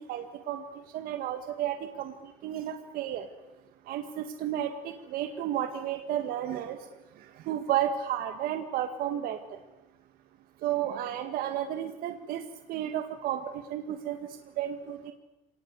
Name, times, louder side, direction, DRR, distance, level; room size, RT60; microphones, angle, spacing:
voice 1, 0.1-0.6 0.9-2.1 2.4-3.2 3.9-6.8 7.5-9.6 10.6-12.4 12.7-15.1, right 11 dB, 85° right, 7 dB, 1.9 m, -32 dB
27.0 x 18.5 x 9.7 m, 1.0 s
cardioid pair, 150°, 15 cm